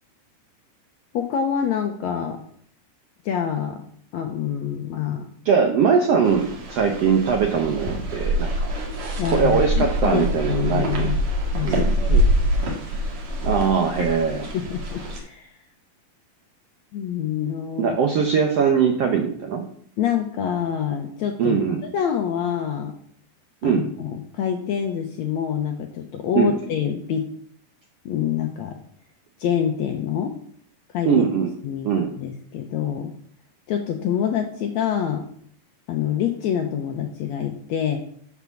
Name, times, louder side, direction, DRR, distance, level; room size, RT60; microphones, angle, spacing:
voice 1, 1.1-2.4 3.2-3.8 4.1-5.2 9.2-9.5 9.8-11.2 11.5-12.3 14.0-14.1 14.5-15.5 16.9-18.0 20.0-21.6 21.9-22.9 23.6-27.3 28.0-28.8 29.4-30.3 30.9-31.2 31.6-31.9 32.2-33.1 33.7-35.3 35.9-38.0, left 8 dB, 75° left, 4 dB, 1.7 m, -26 dB
voice 2, 5.4-8.7 9.2-11.1 11.6-11.9 13.4-14.5 17.8-19.6 21.4-21.8 23.6-23.9 26.3-26.5 31.0-31.5 31.8-32.1, right 6 dB, 75° right, 3 dB, 1.4 m, -21 dB
sound 1, 6.2-15.2, equal, 50° right, 3.1 m, -25 dB
11.0 x 4.8 x 7.1 m, 0.63 s
omnidirectional pair, 4.1 m